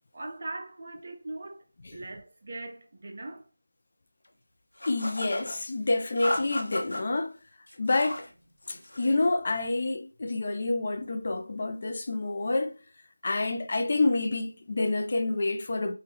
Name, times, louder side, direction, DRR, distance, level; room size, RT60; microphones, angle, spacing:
voice 1, 0.1-1.7 1.9-3.5, right 2 dB, 45° right, 0.6 m, -40 dB
sound 1, 4.8-5.6 6.2-7.0 7.7-8.3 8.6-9.2, left 1 dB, 75° left, 0.8 m, -35 dB
voice 2, 4.8-7.3 7.8-8.3 8.7-12.8 13.2-15.9, left 2 dB, 40° left, 0.4 m, -28 dB
2.9 x 2.2 x 3.4 m
figure-of-eight pair, 170°, 0 cm